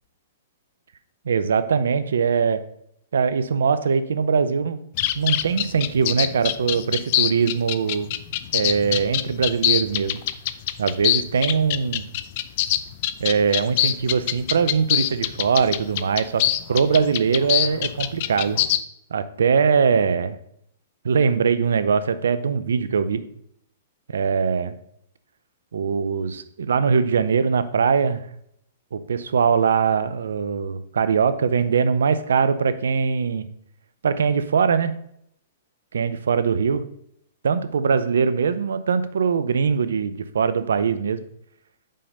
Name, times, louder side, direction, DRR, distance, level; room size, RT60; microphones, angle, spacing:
voice 1, 1.3-2.6 3.1-4.8 5.2-8.1 8.5-10.2 10.8-12.1 13.2-16.4 16.7-18.6 19.1-20.4 21.0-23.2 24.1-24.8 25.7-28.2 28.9-33.5 34.0-34.9 35.9-36.8 37.4-41.2, right 6 dB, 80° right, 13 dB, 0.6 m, -21 dB
sound 1, 5.0-18.8, left 13 dB, 50° left, 0.4 m, -24 dB
5.5 x 5.0 x 5.4 m, 0.71 s
hypercardioid pair, 125°, 0 cm